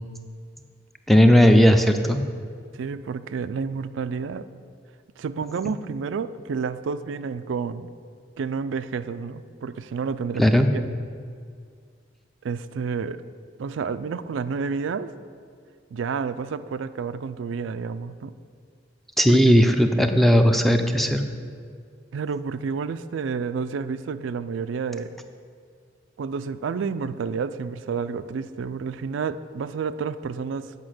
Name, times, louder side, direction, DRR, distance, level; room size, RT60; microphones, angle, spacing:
voice 1, 1.1-2.2 5.6-5.7 10.4-10.7 19.2-21.2, equal, ahead, 6 dB, 0.5 m, -17 dB
voice 2, 2.8-4.4 5.2-7.9 8.4-10.4 10.7-10.8 12.4-13.2 13.6-15.1 15.9-18.3 19.3-19.5 22.1-25.1 26.2-30.7, right 5 dB, 85° right, 12 dB, 0.4 m, -30 dB
8.6 x 5.2 x 7.7 m, 2.2 s
head